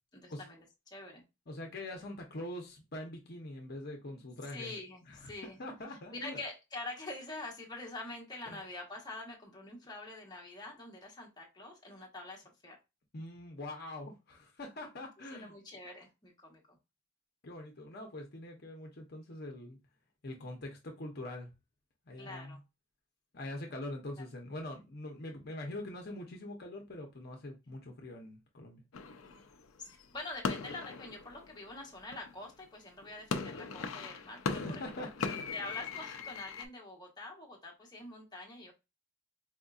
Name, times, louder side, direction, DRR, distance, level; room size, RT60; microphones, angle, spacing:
voice 1, 0.1-1.2 4.5-5.6 6.1-12.8 15.3-16.8 22.2-22.6 24.2-24.3 29.8-38.7, left 2 dB, 20° left, 1.0 m, -46 dB
voice 2, 1.5-4.7 5.1-5.3 5.6-6.4 8.5-8.6 13.1-15.5 17.4-19.8 20.2-21.5 22.1-22.6 23.3-28.8 34.5-35.5, left 1 dB, 50° left, 0.8 m, -43 dB
sound 1, 28.9-32.5 33.0-36.7, left 4 dB, 85° left, 0.5 m, -39 dB
4.3 x 2.7 x 2.3 m
head